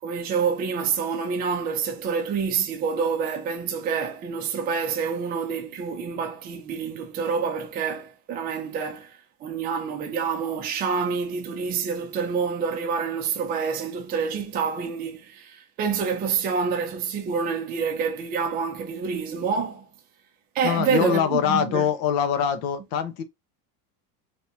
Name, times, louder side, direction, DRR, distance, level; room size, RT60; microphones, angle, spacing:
voice 1, 0.0-19.9 20.5-21.9, right 6 dB, 20° right, 0.5 m, -27 dB
voice 2, 20.6-23.2, left 8 dB, 55° left, 0.7 m, -23 dB
3.4 x 2.6 x 2.7 m
supercardioid pair, 145°, 46 cm